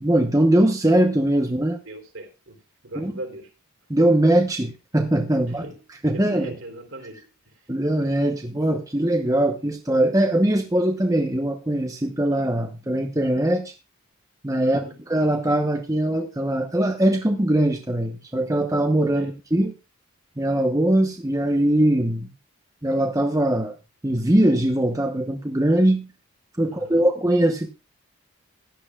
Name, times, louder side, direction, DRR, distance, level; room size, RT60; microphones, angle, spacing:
voice 1, 0.0-1.8 3.0-3.1 3.9-5.6 6.0-6.5 7.7-13.7 14.4-14.8 15.1-19.7 20.4-22.3 22.8-23.7 24.0-26.1 26.6-27.7, right 1 dB, 15° right, 1.0 m, -21 dB
voice 2, 1.8-2.6 2.8-3.5 5.5-5.8 6.1-7.7 14.6-15.0 19.1-19.3 26.6-27.1, right 1 dB, 65° right, 3.3 m, -39 dB
16.0 x 11.5 x 2.4 m
head